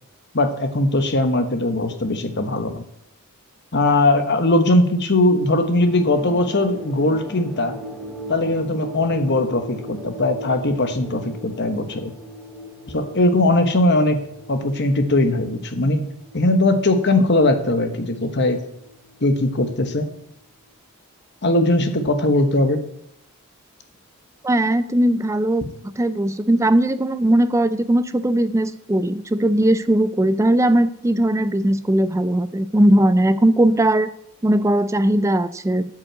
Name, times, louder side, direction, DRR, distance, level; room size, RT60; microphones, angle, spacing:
voice 1, 0.3-2.8 3.7-7.8 8.3-12.1 12.9-16.1 16.3-18.6 19.2-20.1 21.4-22.8 25.6-25.7, left 2 dB, 50° left, 7 dB, 1.2 m, -20 dB
sound 1, 5.5-20.4, equal, 5° left, 1.7 m, -39 dB
voice 2, 24.4-34.1 34.4-35.9, right 1 dB, 15° right, 13 dB, 0.4 m, -19 dB
9.0 x 6.3 x 7.4 m, 0.77 s
head